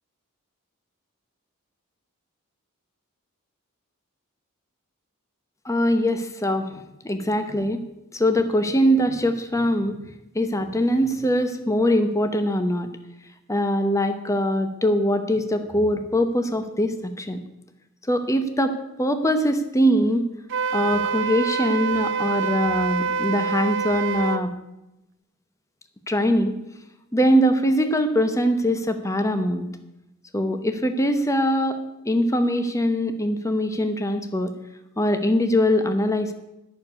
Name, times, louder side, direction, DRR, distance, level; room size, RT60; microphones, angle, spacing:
voice 1, 5.6-7.8 8.1-10.0 10.3-12.9 13.5-17.4 18.1-20.3 20.7-24.5 26.1-26.5 27.1-29.7 30.3-31.8 32.0-34.5 35.0-36.3, equal, 15° left, 8 dB, 0.8 m, -22 dB
Wind instrument woodwind instrument, 20.5-24.4, right 5 dB, 60° right, 0.6 m, -26 dB
11.0 x 6.8 x 9.5 m, 0.92 s
head